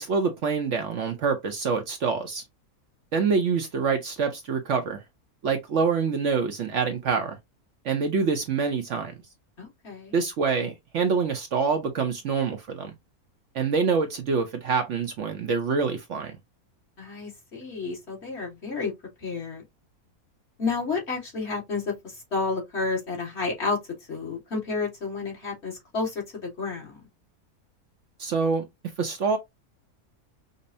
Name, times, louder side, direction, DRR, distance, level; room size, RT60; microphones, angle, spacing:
voice 1, 0.0-2.4 3.1-5.0 5.4-7.4 7.8-9.1 10.1-12.9 13.5-16.3 28.2-28.6 29.0-29.4, right 5 dB, 60° right, 0.9 m, -26 dB
voice 2, 9.6-10.2 17.0-18.9 19.2-19.6 20.6-23.8 24.1-27.0, left 4 dB, 45° left, 1.6 m, -31 dB
5.3 x 2.0 x 2.6 m
omnidirectional pair, 1.6 m